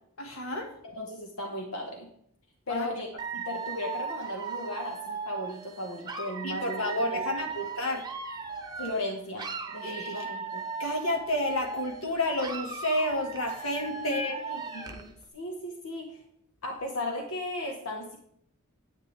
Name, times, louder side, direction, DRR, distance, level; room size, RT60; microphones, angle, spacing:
voice 1, 0.2-0.7 2.7-2.9 6.4-8.0 9.8-10.3 10.8-14.4, left 1 dB, 70° left, 2 dB, 1.9 m, -30 dB
voice 2, 0.8-2.1 2.7-7.3 8.8-10.6 14.0-16.2 16.6-18.2, left 1 dB, 85° left, 1 dB, 1.5 m, -36 dB
Dog / Alarm, 3.2-9.1 9.4-12.1 12.4-15.1, right 5 dB, 20° right, 0.9 m, -37 dB
9.9 x 9.2 x 3.5 m, 0.68 s
head